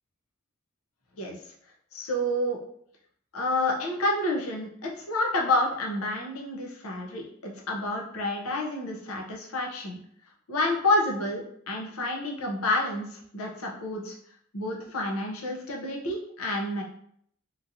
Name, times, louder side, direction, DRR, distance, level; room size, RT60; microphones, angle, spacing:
voice 1, 1.9-2.6 3.3-10.0 10.5-14.1 14.5-16.8, left 1 dB, 85° left, -1 dB, 0.7 m, -29 dB
3.0 x 2.6 x 2.7 m, 0.68 s
head